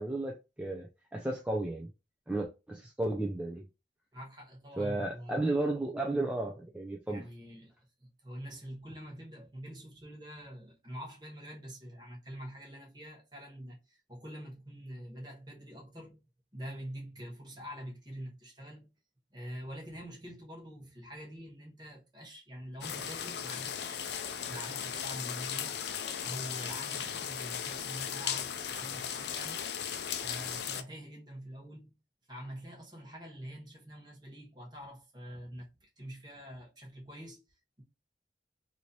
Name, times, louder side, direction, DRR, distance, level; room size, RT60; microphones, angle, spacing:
voice 1, 0.0-1.9 2.3-3.6 4.8-7.2, right 2 dB, 5° right, 0.4 m, -33 dB
voice 2, 4.1-5.5 7.1-7.7 8.0-16.2 16.5-18.9 19.3-29.7 30.1-31.9 32.3-37.4, equal, 25° right, 1.2 m, -46 dB
sound 1, 22.8-30.8, left 8 dB, 60° left, 0.4 m, -37 dB
3.1 x 2.7 x 2.8 m
head